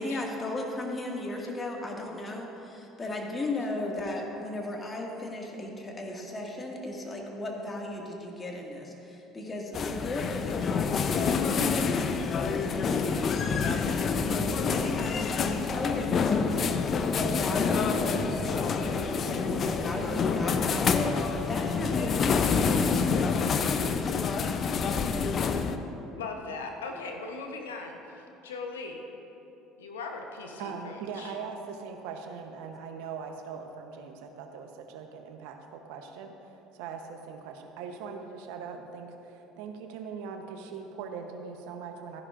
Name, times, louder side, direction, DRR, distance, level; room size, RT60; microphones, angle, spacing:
voice 1, 0.0-16.7 17.1-24.4, left 1 dB, 25° left, 0 dB, 1.9 m, -36 dB
sound 1, 9.7-25.8, left 5 dB, 45° left, 0.6 m, -27 dB
voice 2, 26.2-29.0 29.8-31.4, left 4 dB, 85° left, 3 dB, 0.9 m, -39 dB
voice 3, 30.6-36.4 36.7-42.2, right 6 dB, 70° right, 5 dB, 0.9 m, -41 dB
14.0 x 10.5 x 2.5 m, 3.0 s
hypercardioid pair, 70°, 0 cm